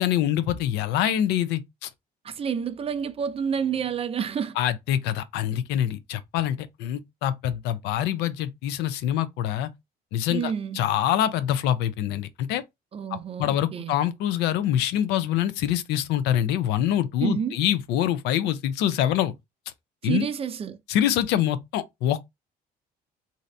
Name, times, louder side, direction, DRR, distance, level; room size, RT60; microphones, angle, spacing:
voice 1, 0.0-1.9 4.6-9.7 10.1-12.6 13.1-19.3 20.0-20.3 20.9-22.2, left 11 dB, 90° left, 0.5 m, -25 dB
voice 2, 2.2-4.6 10.3-10.8 12.9-13.9 17.2-17.6 20.0-20.8, right 7 dB, 35° right, 0.5 m, -29 dB
2.7 x 2.5 x 3.2 m
cardioid pair, 110°, 17 cm